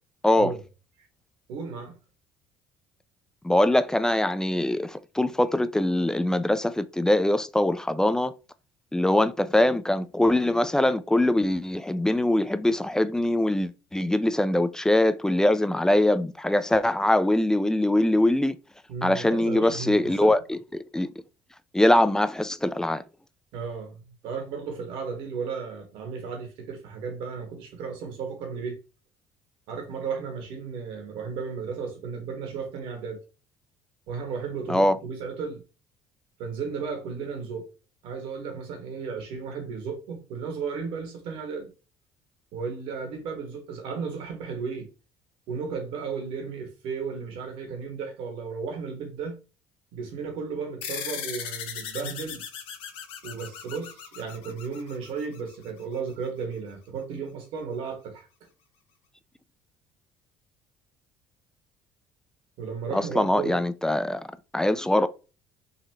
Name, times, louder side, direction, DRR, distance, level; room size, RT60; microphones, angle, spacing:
voice 1, 1.5-2.0 18.9-20.3 23.5-28.8 29.7-33.2 34.1-35.6 36.4-37.6 38.0-41.7 42.5-44.9 45.5-49.4 49.9-52.4 53.2-58.3 62.6-63.6, right 5 dB, 70° right, 1.5 m, -34 dB
voice 2, 3.4-8.3 8.9-18.6 19.0-21.1 21.7-23.0 34.7-35.0 62.9-64.3 64.5-65.1, left 1 dB, 5° left, 0.4 m, -23 dB
sound 1, 50.8-55.7, left 8 dB, 75° left, 0.8 m, -37 dB
4.0 x 2.6 x 2.9 m
supercardioid pair, 75°, 9 cm